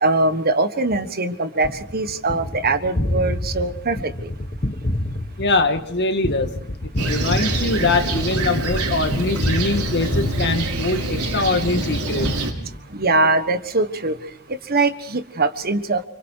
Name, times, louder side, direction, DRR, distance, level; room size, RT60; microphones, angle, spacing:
voice 1, 0.0-4.3 12.9-14.2 14.7-16.1, right 2 dB, 45° right, 1.4 m, -22 dB
Gunshot gunfire, 1.6-11.3 11.7-13.2, left 1 dB, 35° left, 1.4 m, -28 dB
voice 2, 5.4-6.6 7.0-12.3, left 3 dB, 50° left, 1.9 m, -22 dB
Fixed-wing aircraft airplane, 7.0-12.5, right 2 dB, 90° right, 4.8 m, -25 dB
29.0 x 26.5 x 4.7 m
head